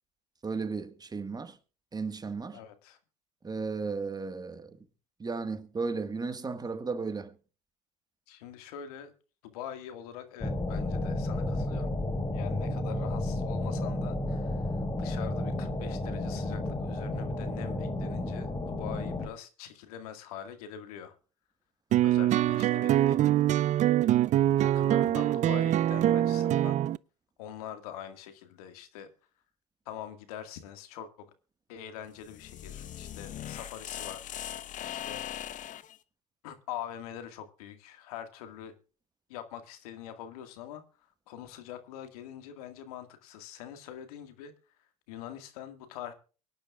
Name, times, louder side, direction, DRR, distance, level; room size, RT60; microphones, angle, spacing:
voice 1, 0.4-1.6 1.9-2.6 3.4-4.8 5.2-7.3, right 4 dB, 20° right, 1.6 m, -34 dB
voice 2, 2.5-3.0 8.3-9.1 9.4-11.9 12.3-21.1 22.0-23.2 24.5-26.8 27.4-29.1 29.9-31.3 31.7-34.4 34.8-35.2 36.4-38.7 39.3-40.8 41.3-44.5 45.1-46.1, left 10 dB, 75° left, 2.0 m, -44 dB
sound 1, 10.4-19.3, left 1 dB, 20° left, 3.0 m, -32 dB
sound 2, 21.9-27.0, right 12 dB, 40° right, 0.5 m, -24 dB
sound 3, 32.1-36.0, left 10 dB, 40° left, 1.0 m, -40 dB
23.5 x 10.5 x 2.4 m
hypercardioid pair, 85°, 19 cm